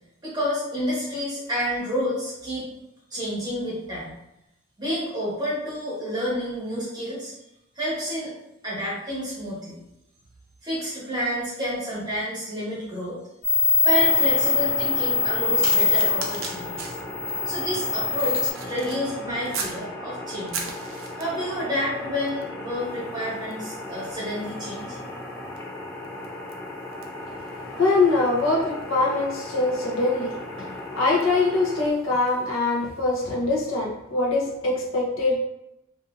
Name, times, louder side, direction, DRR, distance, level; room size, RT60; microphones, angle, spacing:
voice 1, 0.2-2.7 3.1-4.2 4.8-7.3 7.7-8.3 8.6-9.8 10.6-13.2 13.8-17.0 17.4-20.7 21.2-25.0, equal, 20° right, -8 dB, 1.1 m, -29 dB
sound 1, 13.4-18.5, left 4 dB, 25° left, 1.2 m, -23 dB
sound 2, 13.9-31.9, left 1 dB, 10° left, 0.3 m, -37 dB
sound 3, 15.6-19.8 20.3-21.5 22.3-22.5 22.8-32.5 33.2-33.4, right 5 dB, 65° right, 0.4 m, -40 dB
voice 2, 27.8-30.7 31.0-35.4, left 3 dB, 70° left, -2 dB, 0.7 m, -23 dB
2.6 x 2.6 x 2.5 m, 0.86 s
head